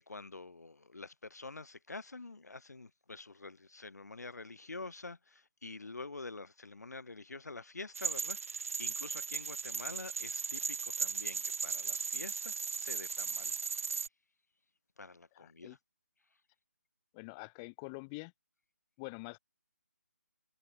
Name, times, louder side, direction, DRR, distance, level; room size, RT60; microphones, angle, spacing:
voice 1, 0.0-13.6 15.0-15.8, left 3 dB, 85° left, 5.7 m, -47 dB
sound 1, 7.9-14.1, right 5 dB, 60° right, 0.5 m, -37 dB
voice 2, 15.3-15.8 17.1-18.3 19.0-19.4, left 32 dB, 15° left, 1.5 m, -45 dB
hypercardioid pair, 165°, 9 cm